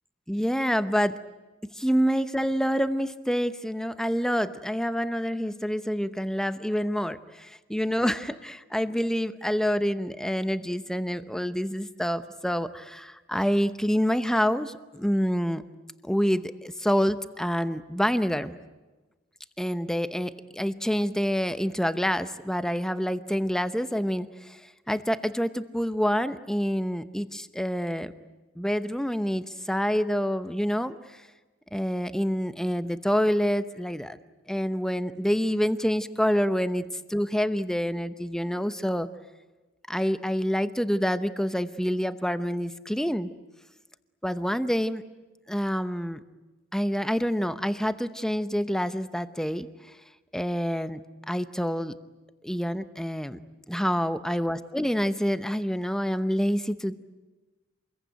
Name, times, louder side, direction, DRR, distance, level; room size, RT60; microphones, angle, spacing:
voice 1, 0.3-1.2 1.7-15.6 16.0-18.6 19.6-24.6 24.9-28.1 28.6-31.2 31.7-34.2 34.5-39.1 39.9-43.3 44.2-45.0 45.5-46.2 46.7-49.7 50.3-52.0 52.4-53.4 53.7-57.0, equal, 5° left, 11 dB, 0.9 m, -27 dB
27.5 x 22.0 x 9.2 m, 1.2 s
head